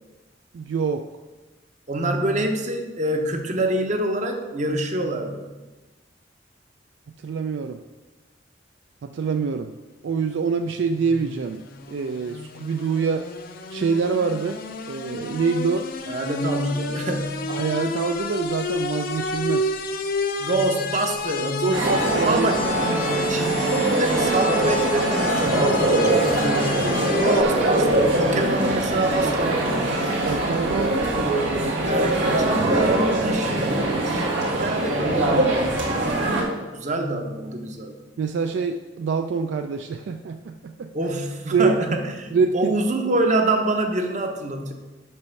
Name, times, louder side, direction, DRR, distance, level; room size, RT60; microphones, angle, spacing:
voice 1, 0.5-1.0 7.2-7.8 9.0-9.7 10.0-13.3 13.7-14.6 14.9-15.9 17.5-19.7 21.6-22.5 30.2-31.0 38.2-40.9 41.5-41.7 42.3-42.7, right 5 dB, 70° right, 6 dB, 0.3 m, -25 dB
voice 2, 1.9-5.5 16.1-17.5 20.4-22.7 23.3-30.0 31.8-38.0 40.9-44.7, right 2 dB, 40° right, 4 dB, 0.8 m, -26 dB
sound 1, 10.7-27.4, left 2 dB, 50° left, 0.5 m, -30 dB
sound 2, 21.7-36.4, right 1 dB, 85° right, 1.7 m, -22 dB
5.5 x 5.3 x 5.8 m, 1.2 s
head